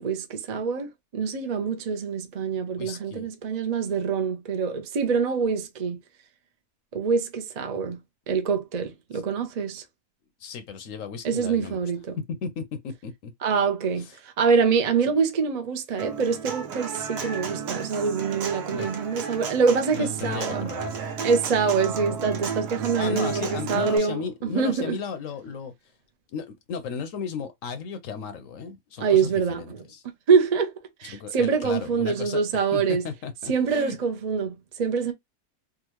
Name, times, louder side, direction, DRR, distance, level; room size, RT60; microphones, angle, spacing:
voice 1, 0.0-6.0 6.9-8.0 8.3-9.8 11.2-12.1 13.4-20.7 21.2-25.0 29.0-29.8 30.3-30.7 31.0-33.0 33.5-35.1, right 5 dB, 50° right, 0.5 m, -25 dB
voice 2, 2.7-3.3 9.1-9.2 10.4-11.8 12.3-13.3 14.0-14.2 18.7-18.9 19.9-21.0 23.0-25.7 26.3-30.0 31.0-32.4 32.7-34.0, left 5 dB, 65° left, 0.9 m, -35 dB
Human voice / Acoustic guitar, 16.0-24.0, right 6 dB, 80° right, 1.4 m, -33 dB
3.7 x 2.3 x 2.9 m
omnidirectional pair, 1.6 m